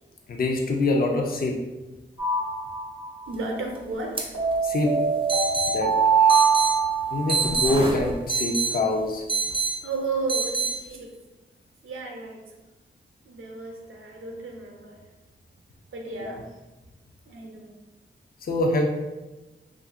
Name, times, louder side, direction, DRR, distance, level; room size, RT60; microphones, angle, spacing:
voice 1, 0.3-1.6 4.6-5.0 5.7-6.0 7.1-9.2 16.2-16.3 18.4-18.8, left 2 dB, 45° left, 2 dB, 0.4 m, -24 dB
sound 1, 2.2-3.2 4.3-7.6, right 5 dB, 70° left, 1.2 m, -23 dB
voice 2, 3.3-4.3 9.8-11.1 11.8-12.4 13.3-15.0 15.9-16.5 17.3-17.8, right 3 dB, 85° right, 1 dB, 0.5 m, -33 dB
sound 2, 4.2-4.3 4.5-4.6 5.3-5.7 6.3-6.7 7.3-8.7 9.3-9.7 10.3-10.7, right 5 dB, 25° right, 0.4 m, -25 dB
2.7 x 2.4 x 2.4 m, 1.1 s
wide cardioid pair, 80°, 20 cm